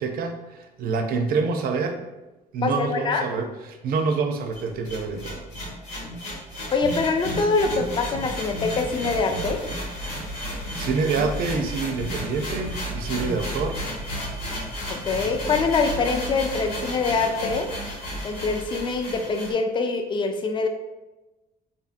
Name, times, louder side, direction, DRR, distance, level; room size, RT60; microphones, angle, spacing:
voice 1, 0.0-2.0 2.5-5.4 10.8-13.8, right 4 dB, 60° right, 5 dB, 0.4 m, -27 dB
voice 2, 2.6-3.2 6.7-9.6 14.9-17.7 18.2-20.7, left 4 dB, 30° left, 5 dB, 0.3 m, -24 dB
sound 1, 4.5-19.5, equal, 85° left, 1.1 m, -33 dB
sound 2, 4.6-4.7 5.0-5.3 5.5-5.8 6.0-6.2 6.8-7.0 7.3-7.4 7.7-7.9 8.1-8.3 8.5-9.8 10.1-10.2 10.6-10.8 11.4-11.6 12.0-12.2 12.6-12.8 13.2-13.4, equal, 65° left, 0.7 m, -36 dB
2.7 x 2.6 x 2.4 m, 1.1 s
cardioid pair, 110°, 17 cm